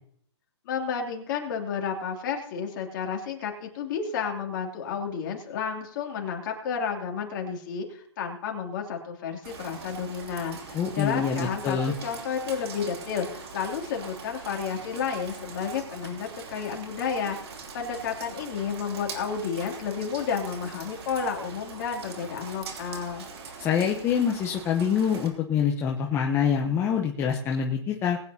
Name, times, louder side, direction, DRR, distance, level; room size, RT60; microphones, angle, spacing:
voice 1, 0.6-17.4 17.7-23.2, left 6 dB, 45° left, 1 dB, 3.0 m, -31 dB
Rain, 9.4-25.3, right 4 dB, 60° right, 3.0 m, -42 dB
voice 2, 10.7-11.9 23.6-28.2, left 7 dB, 15° left, 0 dB, 1.0 m, -25 dB
21.0 x 9.6 x 2.9 m, 0.64 s
hypercardioid pair, 150°, 15 cm